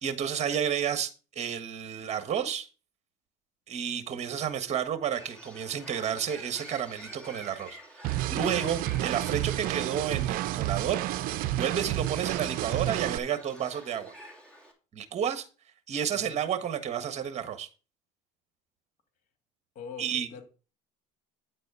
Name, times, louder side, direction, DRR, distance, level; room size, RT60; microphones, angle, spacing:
voice 1, 0.0-2.7 3.7-11.0 11.6-14.1 14.9-15.5 15.9-17.7 20.0-20.3, right 8 dB, 45° right, 1.4 m, -31 dB
Bird, 5.1-14.7, equal, 5° left, 3.2 m, -49 dB
sound 1, 8.0-13.2, right 15 dB, 60° right, 0.6 m, -30 dB
voice 2, 16.1-16.6 19.8-20.4, left 6 dB, 55° left, 2.0 m, -44 dB
9.6 x 4.2 x 6.8 m
supercardioid pair, 100°, 16 cm